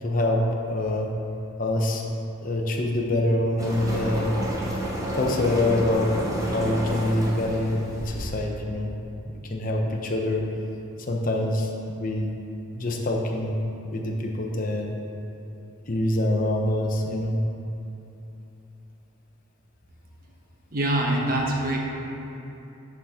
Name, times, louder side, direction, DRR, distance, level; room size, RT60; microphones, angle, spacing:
voice 1, 0.0-1.1 1.6-2.0 2.4-4.3 5.1-6.1 6.5-8.9 9.2-10.4 11.1-11.7 12.0-12.3 12.7-13.6 13.9-14.9 15.9-17.4, left 1 dB, 40° left, 0 dB, 0.6 m, -25 dB
sound 1, 3.6-8.4, equal, 15° right, 0.9 m, -30 dB
voice 2, 20.7-21.8, right 1 dB, 45° right, -1 dB, 0.9 m, -24 dB
6.7 x 5.6 x 4.9 m, 2.9 s
head